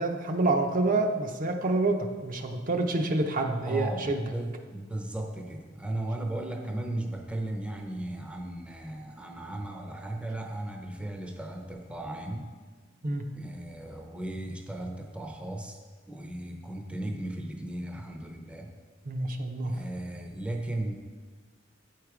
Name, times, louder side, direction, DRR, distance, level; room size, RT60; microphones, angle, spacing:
voice 1, 0.0-4.2 13.0-13.2 19.1-19.7, right 2 dB, 45° right, 4 dB, 0.6 m, -27 dB
voice 2, 3.6-12.5 13.3-15.8 16.1-18.7 19.6-20.9, right 1 dB, 5° right, 3 dB, 0.6 m, -36 dB
8.9 x 4.7 x 4.9 m, 1.4 s
head